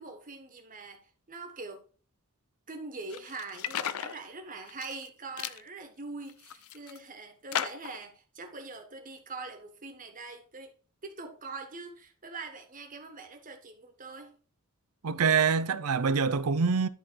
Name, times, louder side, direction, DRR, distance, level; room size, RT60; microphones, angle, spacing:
voice 1, 0.0-1.9 2.7-10.7 11.0-14.4, right 3 dB, 40° right, 1.5 m, -43 dB
sound 1, 3.1-4.2 4.7-5.1 5.4-5.6 6.2-7.0 7.5-8.0, left 9 dB, 70° left, 0.5 m, -35 dB
voice 2, 15.0-16.9, right 5 dB, 80° right, 0.6 m, -25 dB
11.5 x 3.9 x 4.6 m
head